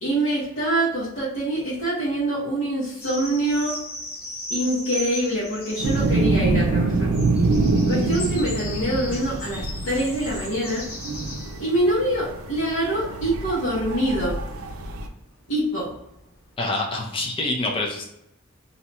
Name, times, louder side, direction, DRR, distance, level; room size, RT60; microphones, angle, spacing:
voice 1, 0.0-3.8 4.5-7.1 7.9-10.9 11.6-14.4 15.5-15.9, right 1 dB, 65° left, -9 dB, 1.1 m, -25 dB
sound 1, 3.0-6.4 6.9-14.7 15.0-16.3, left 1 dB, 85° left, 1.3 m, -37 dB
sound 2, 5.8-15.1, right 2 dB, 85° right, 0.5 m, -25 dB
voice 2, 16.6-18.0, left 2 dB, 25° left, 0 dB, 0.5 m, -26 dB
2.7 x 2.3 x 4.1 m, 0.81 s
head